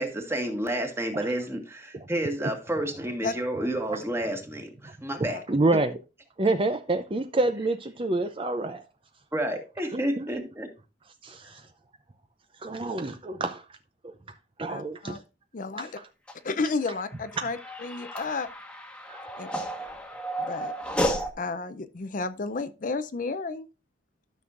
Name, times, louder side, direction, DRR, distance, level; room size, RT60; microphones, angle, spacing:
voice 1, 0.0-5.4 5.7-5.8 9.3-10.7, right 1 dB, 15° right, 1.7 m, -30 dB
voice 2, 5.2-6.0 6.4-8.8 9.9-10.3 11.2-11.6 12.6-13.6 14.0-14.1 14.6-15.2 15.8-16.1 18.1-18.2 19.1-19.2, right 2 dB, 30° right, 0.6 m, -28 dB
voice 3, 14.7-15.2 15.5-15.9 16.4-18.5 19.4-19.5 20.4-20.7 21.4-23.7, left 3 dB, 50° left, 0.5 m, -32 dB
sound 1, 16.3-21.3, equal, 5° left, 1.3 m, -32 dB
13.0 x 6.2 x 2.5 m
head